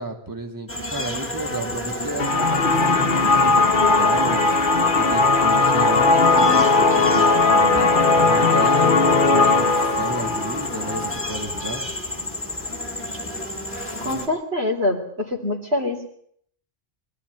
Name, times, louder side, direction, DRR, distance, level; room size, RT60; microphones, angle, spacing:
voice 1, 0.0-4.4 4.8-9.7 9.9-11.8, right 2 dB, 20° right, 3 dB, 2.3 m, -32 dB
sound 1, 0.7-14.3, left 1 dB, 10° left, 2.8 m, -31 dB
sound 2, 2.2-11.9, left 3 dB, 55° left, 1.3 m, -18 dB
voice 2, 6.3-7.0 14.0-16.0, left 2 dB, 85° right, 2 dB, 3.5 m, -25 dB
22.5 x 13.0 x 9.4 m, 0.65 s
omnidirectional pair, 1.1 m